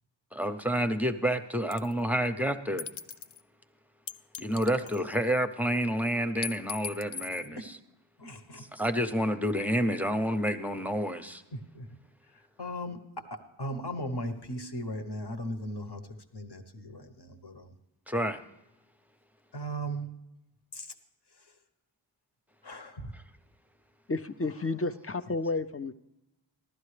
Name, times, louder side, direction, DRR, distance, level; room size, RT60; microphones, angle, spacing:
voice 1, 0.3-2.9 4.4-7.6 8.6-11.4 18.1-18.4, equal, 5° right, 8 dB, 0.7 m, -29 dB
sound 1, 1.7-2.0 2.8-3.4 4.1-5.3 6.4-7.5, left 7 dB, 75° left, 0.6 m, -39 dB
voice 2, 8.2-8.7 11.5-12.0 12.3-17.7 19.5-20.1 20.7-20.9 21.3-21.5 22.6-23.1, equal, 55° left, 6 dB, 1.1 m, -38 dB
voice 3, 24.1-25.9, left 3 dB, 30° left, 12 dB, 0.5 m, -31 dB
15.5 x 12.0 x 3.3 m, 0.92 s
wide cardioid pair, 40°, 48 cm